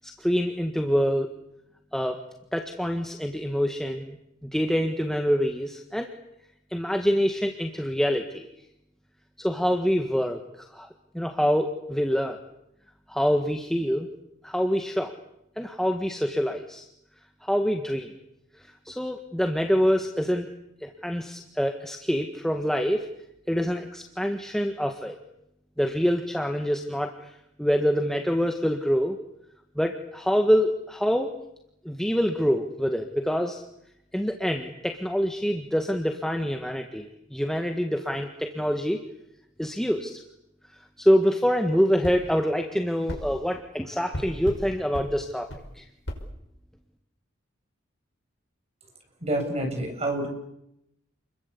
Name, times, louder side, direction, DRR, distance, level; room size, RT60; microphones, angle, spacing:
voice 1, 0.0-1.3 1.9-2.2 2.5-4.2 4.4-6.1 6.7-8.4 9.4-10.4 10.7-10.9 11.1-12.4 13.1-14.1 14.4-15.1 15.6-16.9 17.5-18.1 18.8-20.5 20.8-23.1 23.5-25.2 25.8-27.3 27.6-29.2 29.7-31.3 31.8-33.6 34.1-39.0 39.6-40.2 41.0-45.5 45.7-45.9, equal, ahead, 4 dB, 1.6 m, -25 dB
sound 1, 42.0-42.2 43.1-43.2 44.1-44.6 44.9-45.1 45.5-45.6 46.1-46.2, equal, 70° left, 5.9 m, -34 dB
voice 2, 49.2-50.3, right 1 dB, 35° right, 3 dB, 7.6 m, -28 dB
29.5 x 22.0 x 8.5 m, 0.81 s
head